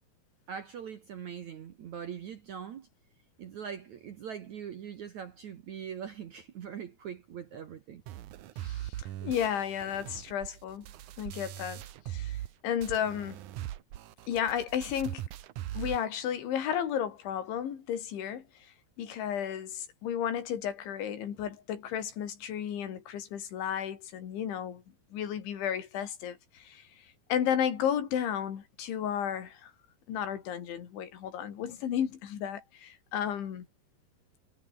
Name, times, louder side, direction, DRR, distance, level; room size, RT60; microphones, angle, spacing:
voice 1, 0.5-2.9 3.4-8.0, right 8 dB, 60° right, 2.0 m, -42 dB
sound 1, 8.1-12.5 12.8-16.1, right 13 dB, 85° right, 1.7 m, -40 dB
voice 2, 8.6-9.0 9.2-10.9 11.2-13.4 14.3-15.2 15.8-24.8 25.1-27.1 27.3-29.7 30.1-33.7, left 9 dB, 80° left, 5.4 m, -33 dB
omnidirectional pair, 5.3 m